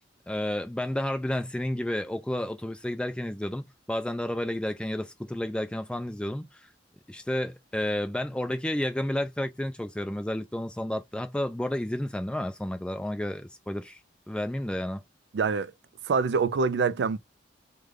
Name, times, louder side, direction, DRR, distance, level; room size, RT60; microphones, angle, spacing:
voice 1, 0.3-6.7 7.1-14.0 14.3-15.0, left 1 dB, 5° left, 0.3 m, -31 dB
voice 2, 15.3-15.7 16.0-17.2, right 5 dB, 65° right, 0.4 m, -25 dB
3.2 x 2.1 x 3.6 m
head